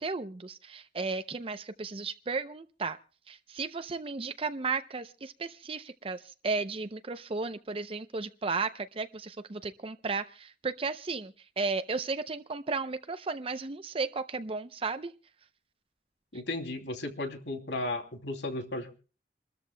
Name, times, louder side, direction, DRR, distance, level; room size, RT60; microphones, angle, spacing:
voice 1, 0.0-3.0 3.3-15.1, right 4 dB, 30° right, 9 dB, 0.5 m, -34 dB
voice 2, 16.3-19.0, left 2 dB, 90° left, 4 dB, 2.8 m, -35 dB
28.0 x 13.5 x 2.2 m, 0.37 s
head